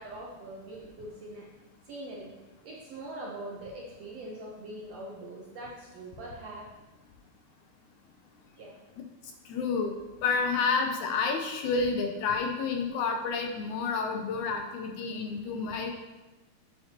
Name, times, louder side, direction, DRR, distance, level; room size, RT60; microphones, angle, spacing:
voice 1, 0.0-1.5 1.8-2.3 2.6-6.7 8.6-8.8, right 1 dB, 70° right, -3 dB, 1.5 m, -42 dB
voice 2, 9.5-10.0 10.2-15.9, left 4 dB, 80° left, 4 dB, 1.8 m, -29 dB
8.6 x 7.8 x 2.9 m, 1.1 s
omnidirectional pair, 4.1 m